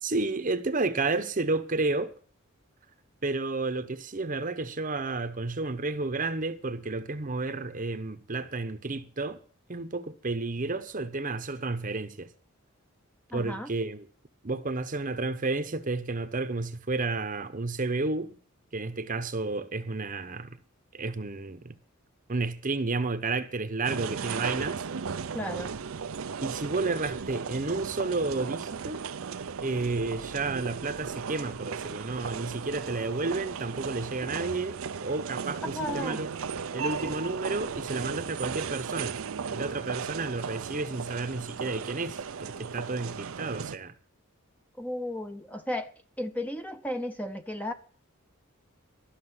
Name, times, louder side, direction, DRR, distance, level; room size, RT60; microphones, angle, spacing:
voice 1, 0.0-2.1 3.2-9.4 9.7-12.3 13.3-14.1 14.4-18.4 18.7-20.6 20.9-21.7 22.3-24.8 26.4-29.0 29.6-36.3 36.7-39.2 39.5-43.9, right 3 dB, 40° right, 0.9 m, -31 dB
voice 2, 13.3-13.7 25.3-25.7 35.6-36.2 44.8-45.9 46.2-47.7, left 1 dB, 5° left, 0.8 m, -34 dB
sound 1, 23.8-43.8, right 6 dB, 75° right, 0.6 m, -36 dB
13.0 x 6.6 x 8.1 m
head